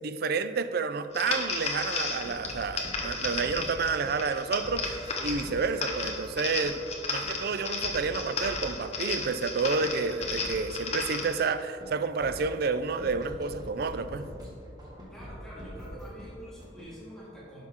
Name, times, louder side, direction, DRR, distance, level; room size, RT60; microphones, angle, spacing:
voice 1, 0.0-6.8 7.1-14.3, right 4 dB, 60° right, 0.4 m, -30 dB
sound 1, 1.1-11.4, left 4 dB, 40° left, 1.1 m, -34 dB
sound 2, 1.8-4.1 4.6-5.6 6.0-6.9 7.2-7.3 7.6-8.9 9.2-11.3 11.6-11.9 12.2-14.5 14.8-16.3 16.6-16.8, equal, 25° right, 1.7 m, -44 dB
voice 2, 15.1-17.7, equal, 5° left, 1.6 m, -46 dB
10.5 x 6.0 x 3.7 m
head